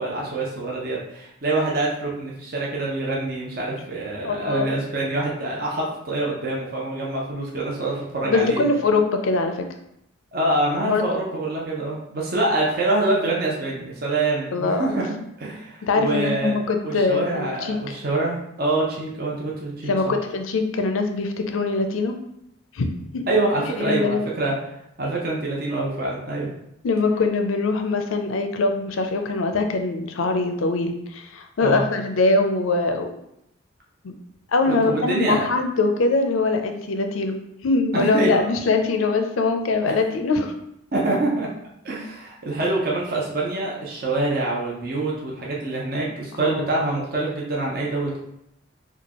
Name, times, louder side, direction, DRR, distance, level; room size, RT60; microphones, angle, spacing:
voice 1, 0.0-8.6 10.3-15.1 15.4-16.6 16.8-20.1 23.3-24.6 25.0-26.5 31.6-31.8 34.7-35.4 37.9-38.4 39.9-40.0 40.9-41.5 41.8-48.2, right 2 dB, 50° right, -4 dB, 0.7 m, -25 dB
voice 2, 4.2-4.7 8.2-9.6 10.8-11.1 14.5-15.0 15.8-17.9 19.9-22.1 22.7-22.9 23.1-23.2 23.8-24.3 26.8-33.1 34.0-34.1 34.5-40.5 46.4-46.7, left 3 dB, 90° left, 6 dB, 0.5 m, -22 dB
4.4 x 2.3 x 2.9 m, 0.79 s
head